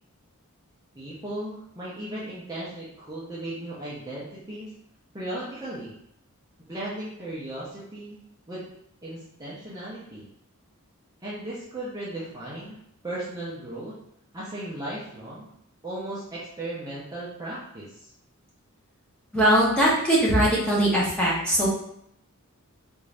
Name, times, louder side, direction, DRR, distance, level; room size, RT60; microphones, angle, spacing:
voice 1, 1.0-4.7 5.1-6.0 6.7-8.2 8.5-8.6 9.0-10.3 11.2-12.8 13.0-14.0 14.3-15.5 15.8-18.1, right 1 dB, 15° right, -8 dB, 0.7 m, -36 dB
voice 2, 19.3-21.7, right 1 dB, 5° left, -7 dB, 1.0 m, -21 dB
3.7 x 2.6 x 3.3 m, 0.72 s
head